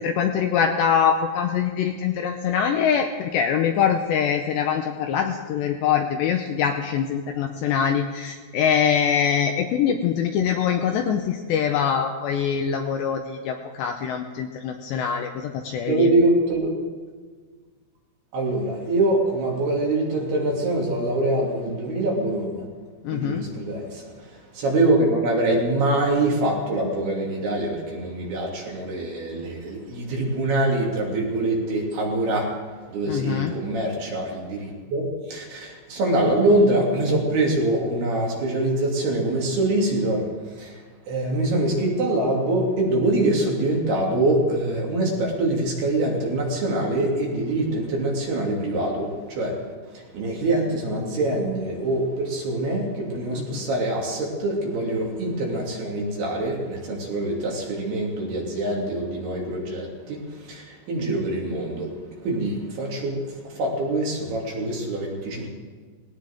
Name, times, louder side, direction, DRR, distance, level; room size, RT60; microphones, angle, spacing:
voice 1, 0.0-16.1 23.0-23.5 33.1-33.5 53.3-53.6, left 7 dB, 80° left, 4 dB, 2.6 m, -23 dB
voice 2, 15.9-16.7 18.3-22.7 23.1-32.5 32.9-49.5 49.9-65.5, right 2 dB, 55° right, -2 dB, 4.4 m, -24 dB
19.5 x 18.0 x 3.7 m, 1.5 s
omnidirectional pair, 5.8 m